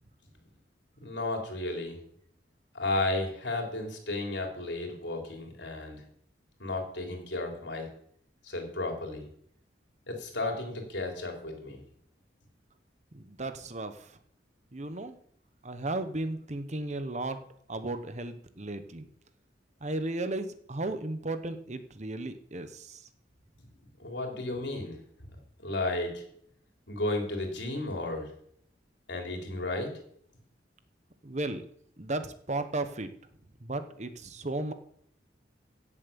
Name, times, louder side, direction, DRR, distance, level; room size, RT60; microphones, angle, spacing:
voice 1, 1.0-2.0 2.7-6.0 6.6-7.9 8.4-9.2 10.1-11.8 24.0-25.0 25.6-26.2 26.9-28.3 29.1-29.9, left 2 dB, 75° left, 2 dB, 3.7 m, -33 dB
voice 2, 13.1-14.1 14.7-15.1 15.6-17.4 17.7-19.1 19.8-23.0 31.2-31.6 32.0-33.1 33.6-34.7, right 2 dB, 40° right, 10 dB, 1.1 m, -35 dB
16.5 x 7.5 x 7.0 m, 0.67 s
head